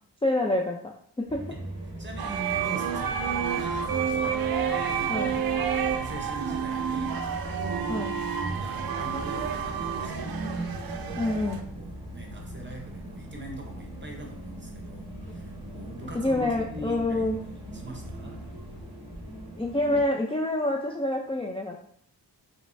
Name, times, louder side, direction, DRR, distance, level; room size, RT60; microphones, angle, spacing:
voice 1, 0.2-1.4 5.1-5.3 7.9-8.2 11.2-11.7 16.1-17.4 19.6-21.8, left 1 dB, 15° left, 0 dB, 0.3 m, -27 dB
sound 1, 1.3-20.1, right 1 dB, 10° right, 1.2 m, -40 dB
voice 2, 2.0-4.5 4.7-5.4 5.7-5.8 6.0-7.3 7.5-8.1 8.5-10.6 11.0-11.4 11.8-18.4, right 2 dB, 25° right, 2 dB, 0.9 m, -42 dB
sound 2, 2.2-11.6, right 7 dB, 60° right, 0.5 m, -30 dB
sound 3, 3.0-18.9, left 1 dB, 85° left, 0.7 m, -46 dB
5.1 x 3.2 x 2.6 m, 0.63 s
wide cardioid pair, 95°, 42 cm